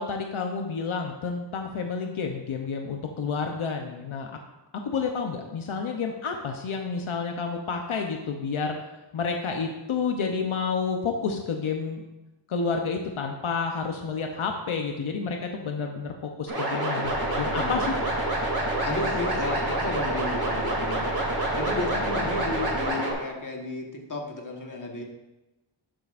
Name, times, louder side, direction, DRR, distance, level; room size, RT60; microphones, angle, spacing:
voice 1, 0.0-4.3 4.8-8.8 9.1-12.0 12.5-17.9, left 5 dB, 80° left, 3 dB, 0.9 m, -30 dB
sound 1, 16.5-23.1, right 1 dB, 45° right, 3.1 m, -27 dB
Alarm, 17.0-22.9, right 1 dB, 5° right, 1.7 m, -37 dB
voice 2, 17.5-17.9 18.8-21.1 21.6-25.0, left 3 dB, 40° left, 1 dB, 1.4 m, -33 dB
11.0 x 7.7 x 2.5 m, 1.0 s
wide cardioid pair, 95°, 48 cm